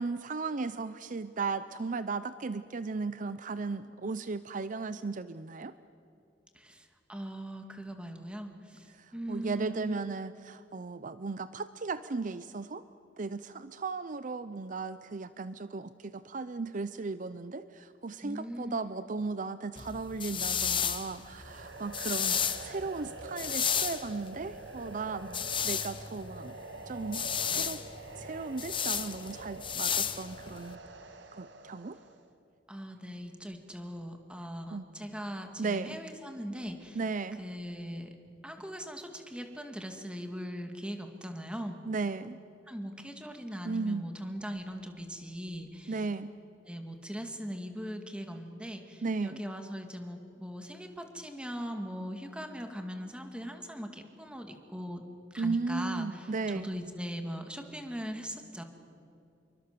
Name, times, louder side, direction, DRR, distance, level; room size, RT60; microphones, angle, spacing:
voice 1, 0.0-5.7 9.0-12.8 13.2-26.5 26.9-27.8 28.1-30.8 31.3-32.0 34.7-34.8 35.6-36.0 37.0-37.4 41.9-42.4 43.6-44.0 45.9-46.3 49.0-49.4 55.4-56.7, right 4 dB, 45° right, 13 dB, 0.6 m, -36 dB
voice 2, 6.5-10.0 18.2-19.1 32.7-37.0 37.4-38.2 38.4-41.8 42.7-46.0 46.7-55.0 55.3-58.6, equal, 5° right, 5 dB, 2.2 m, -40 dB
sound 1, 19.8-30.7, left 8 dB, 30° left, 1.0 m, -33 dB
sound 2, 21.1-32.3, right 2 dB, 85° right, 1.8 m, -46 dB
27.0 x 23.5 x 6.8 m, 2.6 s
head